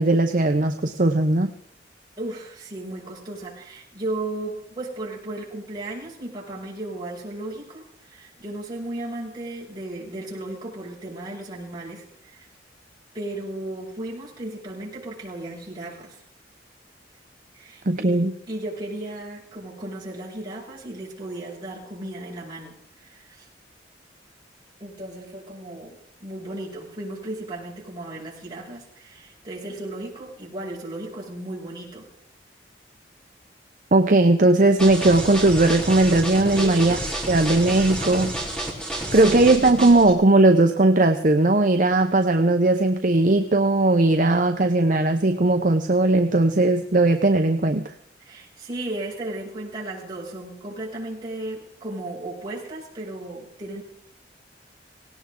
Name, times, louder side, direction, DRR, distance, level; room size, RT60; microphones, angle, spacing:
voice 1, 0.0-1.5 17.9-18.3 33.9-37.0 37.3-38.3 39.1-47.8, right 2 dB, 45° right, 6 dB, 0.8 m, -18 dB
voice 2, 2.2-12.5 13.1-16.2 17.5-18.2 18.5-23.5 24.8-32.1 36.5-36.9 38.7-39.5 48.2-53.8, right 2 dB, 25° right, -6 dB, 6.6 m, -35 dB
sound 1, 34.8-40.1, right 1 dB, 5° left, 3.7 m, -30 dB
18.0 x 18.0 x 3.8 m, 0.67 s
head